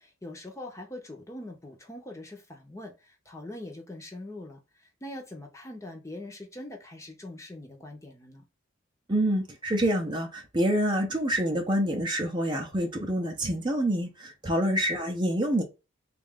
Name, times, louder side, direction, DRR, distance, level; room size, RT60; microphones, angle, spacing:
voice 1, 0.0-8.4, left 1 dB, 15° left, 0.7 m, -43 dB
voice 2, 9.1-15.6, right 1 dB, 20° right, 0.6 m, -27 dB
3.7 x 2.4 x 3.6 m
head